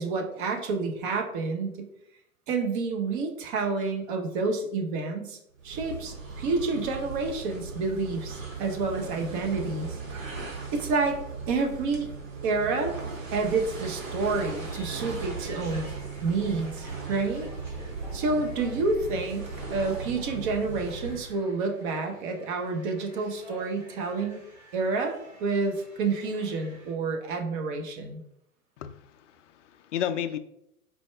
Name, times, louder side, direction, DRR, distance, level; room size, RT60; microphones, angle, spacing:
voice 1, 0.0-1.9 2.5-5.4 5.6-10.0 10.7-11.2 11.5-12.1 12.4-13.0 13.3-15.9 16.2-17.5 18.1-24.4 24.7-28.2, right 3 dB, 35° right, 3 dB, 0.8 m, -29 dB
sound 1, 5.6-21.4, right 4 dB, 60° right, 1.3 m, -38 dB
sound 2, 14.6-26.9, right 1 dB, 5° right, 0.3 m, -49 dB
voice 2, 28.8-30.4, left 10 dB, 55° left, 10 dB, 0.5 m, -33 dB
4.3 x 2.2 x 4.3 m, 0.78 s
figure-of-eight pair, 105°, 44 cm